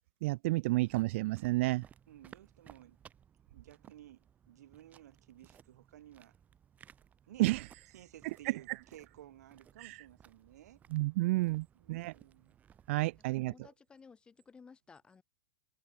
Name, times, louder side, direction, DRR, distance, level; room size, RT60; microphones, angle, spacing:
voice 1, 0.2-1.8 7.4-7.6 10.9-12.1 12.9-13.5, right 20 dB, 50° right, 0.6 m, -30 dB
sound 1, 0.7-13.3, right 8 dB, 15° right, 7.5 m, -61 dB
voice 2, 2.1-3.0 3.5-6.3 7.3-7.5 7.9-10.8 11.7-12.6, right 12 dB, 75° right, 7.9 m, -56 dB
voice 3, 13.4-15.2, left 5 dB, 10° left, 2.8 m, -57 dB
supercardioid pair, 170°, 9 cm